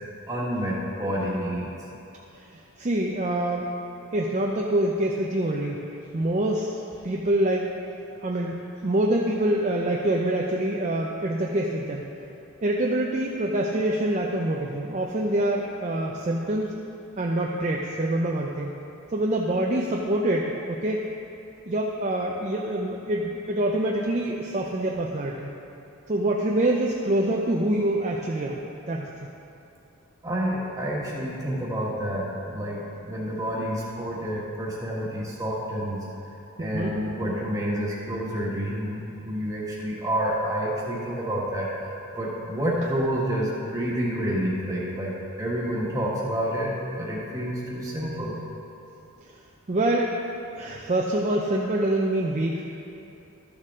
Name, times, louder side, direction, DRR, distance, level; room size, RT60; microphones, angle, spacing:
voice 1, 0.3-1.9 30.2-36.0 36.6-48.3, equal, 15° right, -5 dB, 1.5 m, -29 dB
voice 2, 2.3-3.8 4.1-5.8 6.1-6.8 7.0-7.8 8.2-12.0 12.6-16.7 17.2-18.7 19.1-21.0 21.7-25.5 26.1-28.6 28.9-29.1 36.6-37.0 49.7-50.2 50.5-52.6, right 1 dB, 35° right, -2 dB, 0.5 m, -25 dB
13.0 x 6.6 x 3.7 m, 2.9 s
head